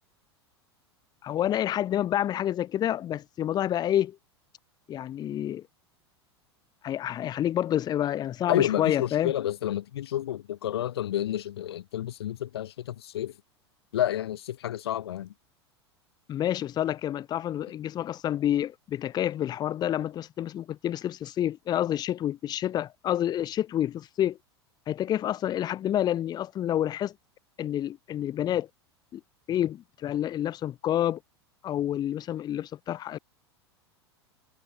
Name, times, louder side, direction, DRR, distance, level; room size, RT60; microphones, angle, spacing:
voice 1, 1.2-4.2 4.9-5.6 6.8-9.3 16.3-24.4 24.9-27.1 27.6-28.7 29.1-29.2 29.5-31.2 31.6-33.2, left 11 dB, 30° left, 1.0 m, -28 dB
voice 2, 8.5-13.3 13.9-15.3, left 12 dB, 65° left, 1.2 m, -30 dB
figure-of-eight pair, 85°, 14 cm